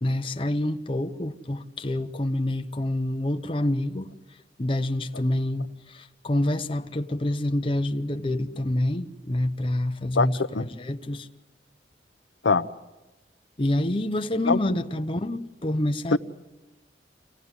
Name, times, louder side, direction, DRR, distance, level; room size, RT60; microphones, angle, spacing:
voice 1, 0.0-4.1 4.6-11.3 13.6-16.2, left 1 dB, 30° left, 0.7 m, -27 dB
voice 2, 10.2-10.3 10.5-10.7 12.4-12.7 14.5-14.6 16.1-16.2, left 4 dB, 80° left, 0.8 m, -21 dB
26.0 x 17.0 x 9.7 m
head